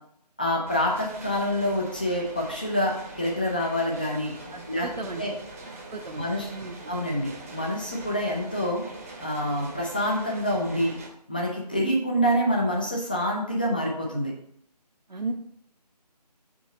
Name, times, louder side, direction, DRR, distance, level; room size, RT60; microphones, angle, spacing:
voice 1, 0.4-4.3 4.7-4.9 5.1-5.3 6.1-6.5 6.9-8.8 9.2-10.9 11.3-14.3, equal, 15° left, -1 dB, 0.5 m, -26 dB
sound 1, 0.7-11.1, right 2 dB, 20° right, 0.9 m, -43 dB
voice 2, 4.5-5.2 5.9-6.2 6.5-6.7 15.1-15.3, right 3 dB, 80° right, 1 dB, 0.9 m, -34 dB
6.1 x 3.9 x 5.1 m, 0.68 s
figure-of-eight pair, 165°, 21 cm